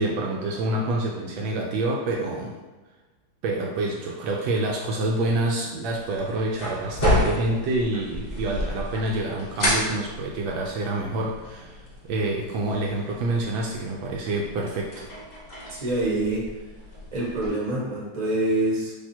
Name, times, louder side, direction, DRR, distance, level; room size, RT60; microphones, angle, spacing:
voice 1, 0.0-2.5 3.4-15.0, right 2 dB, 75° right, -1 dB, 1.2 m, -27 dB
sound 1, 5.8-17.5, left 1 dB, 75° left, 0.4 m, -31 dB
voice 2, 15.7-16.5 17.1-19.0, right 1 dB, 30° right, -5 dB, 0.8 m, -26 dB
3.4 x 2.8 x 4.2 m, 1.2 s
omnidirectional pair, 2.3 m